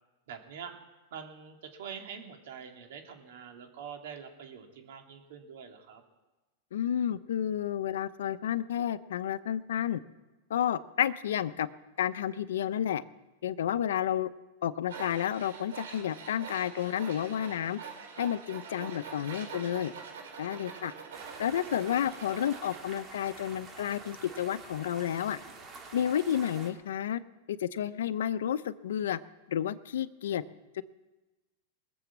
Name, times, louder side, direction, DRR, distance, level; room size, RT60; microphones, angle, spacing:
voice 1, 0.3-0.8 1.1-6.0, right 7 dB, 65° right, 4 dB, 2.4 m, -45 dB
voice 2, 6.7-10.0 10.5-11.7 12.0-13.0 13.4-14.3 14.6-17.8 18.2-19.9 20.4-20.9 21.4-25.4 25.9-27.2 27.5-29.2 29.5-30.4 30.7-30.8, left 10 dB, 85° left, 15 dB, 0.6 m, -31 dB
Tools, 14.9-22.8, right 6 dB, 85° right, 3.4 m, -45 dB
sound 1, 21.1-26.7, right 4 dB, 25° right, 2.1 m, -48 dB
21.0 x 7.1 x 7.3 m, 1.1 s
supercardioid pair, 160°, 0 cm